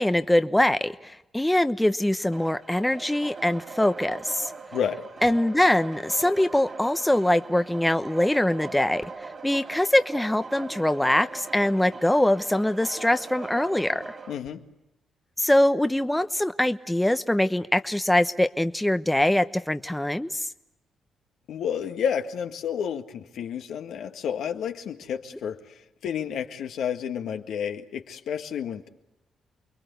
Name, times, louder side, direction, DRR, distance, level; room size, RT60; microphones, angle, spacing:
voice 1, 0.0-4.5 5.2-9.1 9.4-14.2 15.4-20.5, left 1 dB, 10° left, 10 dB, 1.1 m, -23 dB
sound 1, 2.3-14.3, right 4 dB, 45° right, 3.9 m, -41 dB
voice 2, 4.7-5.1 14.3-14.6 21.5-28.9, left 8 dB, 75° left, 5 dB, 1.8 m, -31 dB
29.0 x 22.0 x 8.3 m, 0.93 s
hypercardioid pair, 45°, 0 cm